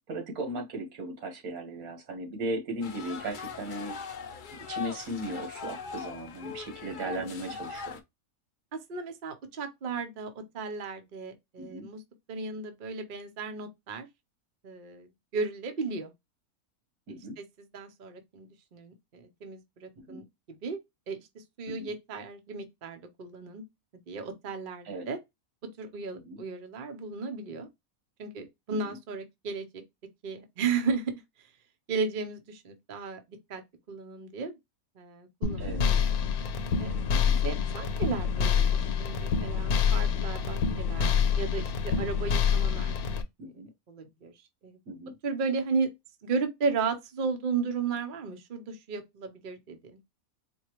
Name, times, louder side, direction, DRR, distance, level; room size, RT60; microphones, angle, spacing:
voice 1, 0.1-4.0 4.7-8.0 11.6-11.9 17.1-17.4 20.1-20.2 21.7-21.9 24.9-25.1 26.2-26.4 28.8-29.0 35.6-35.8 37.1-37.4 43.4-43.7 44.9-45.1, right 1 dB, 85° right, 1.8 m, -37 dB
sound 1, 2.8-8.0, left 6 dB, 60° left, 0.5 m, -40 dB
voice 2, 8.9-12.0 12.3-14.1 14.6-16.1 17.1-20.8 21.1-23.6 24.1-25.2 25.8-27.7 28.2-29.7 30.2-31.1 31.9-33.2 33.5-33.6 33.9-34.6 35.0-36.1 36.8-37.0 37.4-43.2 43.9-44.3 44.6-44.8 45.2-45.9 46.2-50.0, right 4 dB, 45° right, 0.8 m, -35 dB
sound 2, 35.4-43.2, left 6 dB, 85° left, 1.2 m, -27 dB
4.4 x 2.3 x 2.9 m
omnidirectional pair, 1.5 m